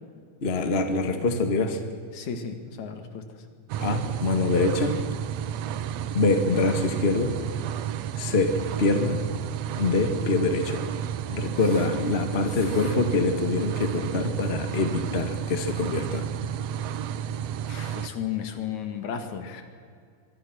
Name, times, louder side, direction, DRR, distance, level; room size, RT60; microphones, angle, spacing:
voice 1, 0.4-1.8 3.8-5.0 6.1-7.3 8.1-8.5 8.8-9.2 9.8-10.8 11.3-16.2, left 3 dB, 25° left, 6 dB, 1.4 m, -25 dB
voice 2, 2.1-3.2 12.5-12.9 17.6-19.5, left 8 dB, 65° left, 7 dB, 3.1 m, -34 dB
sound 1, 3.7-18.1, right 10 dB, 70° right, 1.8 m, -32 dB
25.5 x 22.5 x 6.2 m, 2.2 s
omnidirectional pair, 3.7 m